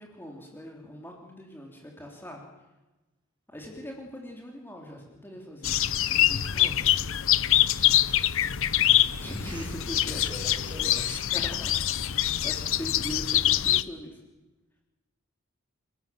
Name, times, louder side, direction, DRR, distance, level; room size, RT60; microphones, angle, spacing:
voice 1, 0.0-2.4 3.5-5.8 6.1-6.8 9.2-10.3 11.3-14.2, equal, 10° left, 0 dB, 3.5 m, -41 dB
sound 1, 5.6-13.8, left 12 dB, 65° left, 0.8 m, -24 dB
voice 2, 7.8-8.8 9.4-11.3, right 1 dB, 20° right, 2 dB, 6.3 m, -45 dB
30.0 x 19.0 x 7.8 m, 1.1 s
head